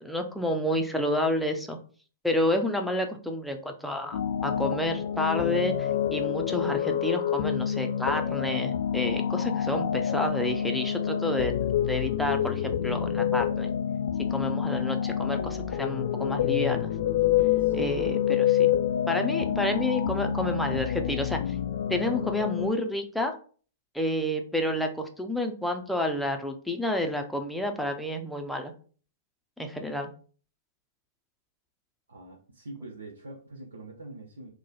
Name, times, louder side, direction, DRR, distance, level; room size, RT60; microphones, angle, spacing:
voice 1, 0.0-1.8 2.2-13.7 14.3-16.9 17.7-18.7 19.1-21.6 21.9-23.4 23.9-28.7 29.6-30.1, left 1 dB, ahead, 3 dB, 0.5 m, -30 dB
sound 1, 4.1-22.7, left 9 dB, 60° left, 0.3 m, -27 dB
voice 2, 17.6-18.0 32.1-34.5, right 2 dB, 80° right, -2 dB, 0.8 m, -43 dB
3.0 x 2.2 x 3.9 m, 0.42 s
figure-of-eight pair, 110°, 0 cm